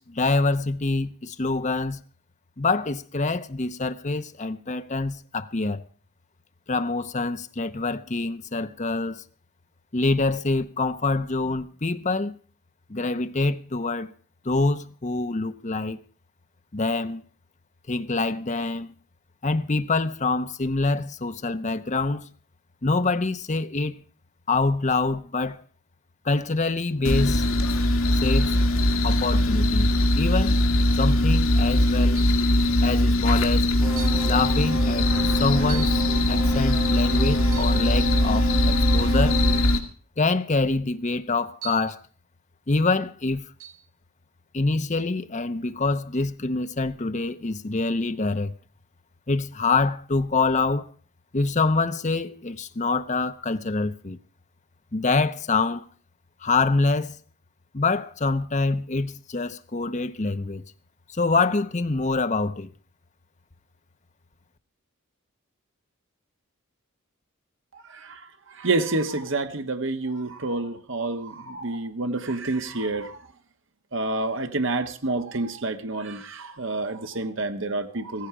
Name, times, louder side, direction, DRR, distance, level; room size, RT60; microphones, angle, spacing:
voice 1, 0.0-2.0 2.6-5.8 6.7-9.2 9.9-12.3 12.9-14.1 14.4-16.0 16.7-17.2 17.9-18.9 19.4-22.3 22.8-24.0 24.5-25.6 26.2-27.5 28.2-28.6 29.0-30.6 31.0-32.2 32.8-33.7 34.2-36.0 36.3-39.4 40.2-42.0 42.7-43.4 44.5-48.5 49.3-50.9 51.3-54.2 54.9-55.9 56.4-57.2 57.7-60.6 61.1-62.7, left 3 dB, 35° left, 0.8 m, -25 dB
sound 1, 27.0-39.8, left 1 dB, 75° left, 2.0 m, -21 dB
sound 2, 30.4-30.7 32.1-32.5 33.3-33.4 34.0-34.3 35.7-36.1 37.4-37.8 39.4-39.7 41.6-42.0 43.6-43.8, right 10 dB, 80° right, 3.2 m, -40 dB
sound 3, 33.8-39.6, right 3 dB, 15° right, 7.5 m, -33 dB
voice 2, 67.7-68.2 68.5-73.2 73.9-78.3, right 2 dB, 60° right, 1.2 m, -28 dB
15.5 x 15.5 x 4.8 m
head